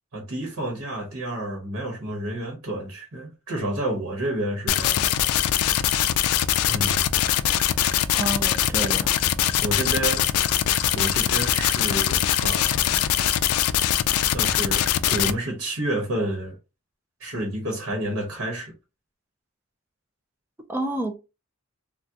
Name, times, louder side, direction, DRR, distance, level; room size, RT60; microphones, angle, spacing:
voice 1, 0.1-5.1 6.7-7.2 9.6-10.2 10.9-13.1 14.3-16.6 17.2-18.7, right 1 dB, 80° right, 1.0 m, -30 dB
sound 1, 4.7-15.3, left 11 dB, 85° left, 0.3 m, -22 dB
voice 2, 8.1-9.2 20.7-21.2, right 2 dB, 10° right, 0.4 m, -29 dB
3.5 x 2.2 x 2.7 m
head